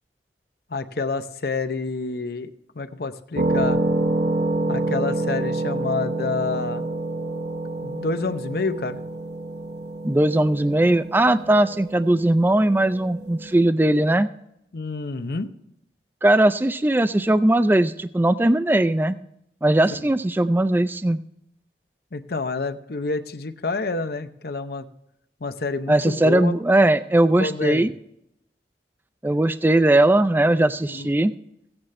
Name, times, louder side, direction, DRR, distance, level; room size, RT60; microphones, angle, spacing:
voice 1, 0.7-3.8 4.7-6.9 7.8-9.0 14.7-15.5 22.1-24.9 25.4-26.6 27.4-27.9 30.9-31.1, left 3 dB, 60° left, 10 dB, 0.7 m, -28 dB
sound 1, 3.4-13.6, right 2 dB, 65° right, 1.0 m, -27 dB
voice 2, 10.0-14.3 16.2-19.2 19.6-21.2 25.9-27.9 29.2-31.3, right 1 dB, 10° right, 12 dB, 0.4 m, -19 dB
16.0 x 8.8 x 3.2 m, 0.79 s
head